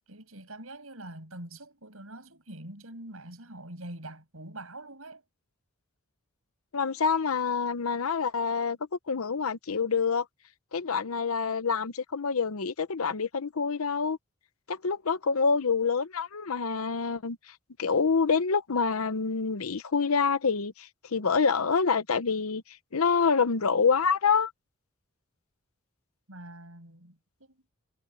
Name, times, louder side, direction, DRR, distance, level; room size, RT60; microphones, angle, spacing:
voice 1, 0.1-5.2 26.3-27.7, right 1 dB, 80° right, 7.7 m, -44 dB
voice 2, 6.7-8.8 9.1-10.3 10.7-14.2 14.7-17.5 17.8-22.6 22.9-24.5, left 5 dB, 90° left, 0.8 m, -26 dB
head